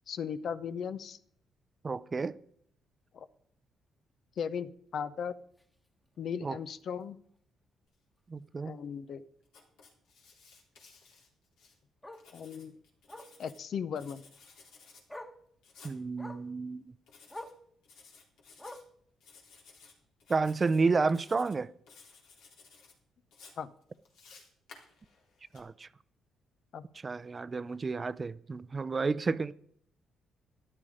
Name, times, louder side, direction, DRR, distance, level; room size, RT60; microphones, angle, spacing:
voice 1, 0.1-1.2 3.1-3.3 4.4-5.4 6.2-7.2 8.6-9.2 12.3-12.8 13.4-14.2 23.6-23.7 26.7-26.8, left 7 dB, 60° left, 0.8 m, -37 dB
voice 2, 1.8-2.3 6.4-6.6 8.3-8.7 15.8-16.9 20.3-21.7 25.5-25.9 27.0-29.5, right 4 dB, 30° right, 0.6 m, -31 dB
Bark, 5.6-5.7 6.1-6.3 6.6-6.7 7.0-7.1 8.5-8.6 11.1-11.2 12.0-12.3 13.1-13.4 14.6-14.7 15.1-15.4 16.2-16.5 17.3-17.6 18.6-19.0 20.0-20.1, left 1 dB, 10° left, 1.4 m, -46 dB
Writing, 9.5-11.8 12.1-13.6 14.0-15.0 15.6-16.0 17.1-17.5 17.8-18.8 19.2-19.9 20.2-20.8 21.1-21.6 21.9-22.9 23.3-25.6, left 4 dB, 90° left, 3.9 m, -57 dB
13.5 x 11.0 x 5.0 m
cardioid pair, 90°, 0 cm